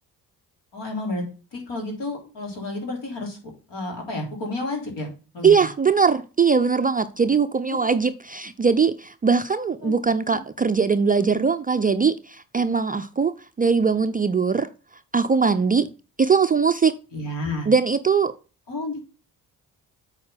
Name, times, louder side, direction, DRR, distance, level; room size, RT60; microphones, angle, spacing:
voice 1, 0.7-1.2 1.5-3.4 3.7-5.1 5.3-5.5 7.7-7.8 9.8-9.9 10.3-10.4 17.1-17.7 18.7-19.0, left 2 dB, 60° left, 3.4 m, -30 dB
voice 2, 5.4-14.7 15.1-15.9 16.2-16.9 17.7-18.3, right 5 dB, 20° right, 0.4 m, -21 dB
8.5 x 4.7 x 5.6 m
figure-of-eight pair, 40°, 47 cm